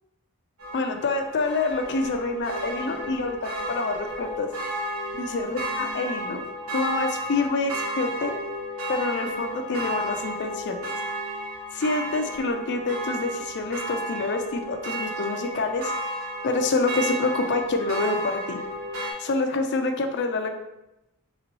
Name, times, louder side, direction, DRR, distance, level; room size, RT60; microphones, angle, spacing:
sound 1, 0.6-19.1, right 1 dB, 75° right, 1.1 m, -33 dB
voice 1, 0.7-4.5 5.1-6.4 6.7-8.3 8.9-10.8 11.7-15.9 16.4-18.6 19.2-20.5, left 3 dB, 50° left, 6 dB, 0.5 m, -27 dB
3.4 x 3.0 x 3.9 m, 0.91 s
head